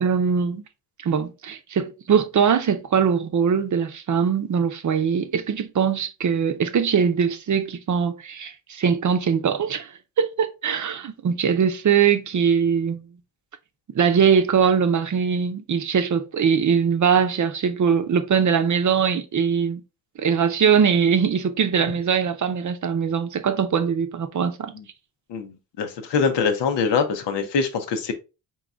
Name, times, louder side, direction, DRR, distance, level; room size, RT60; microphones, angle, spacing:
voice 1, 0.0-0.6 1.0-9.9 10.2-13.0 13.9-19.8 20.2-24.7, right 7 dB, 45° right, 0.6 m, -21 dB
voice 2, 25.3-28.1, left 5 dB, 90° left, 0.8 m, -24 dB
3.9 x 2.8 x 3.4 m
cardioid pair, 95°, 41 cm